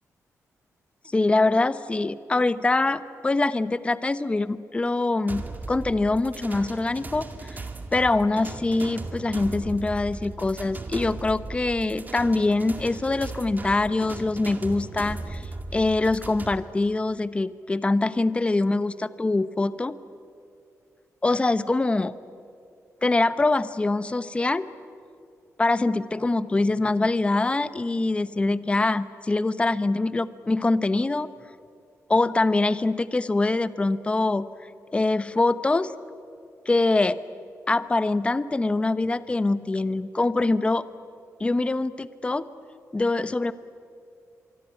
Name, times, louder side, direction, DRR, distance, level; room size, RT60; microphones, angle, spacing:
voice 1, 1.0-7.6 7.9-15.4 15.7-20.0 21.2-22.1 23.0-24.7 25.6-31.3 32.1-34.5 34.9-35.9 36.7-37.2 37.7-40.8 41.4-42.4 42.9-43.5, left 2 dB, 20° left, 14 dB, 0.9 m, -24 dB
sound 1, 5.3-16.6, right 3 dB, 30° right, 2.1 m, -37 dB
24.5 x 24.0 x 9.1 m, 2.4 s
cardioid pair, 120°, 6 cm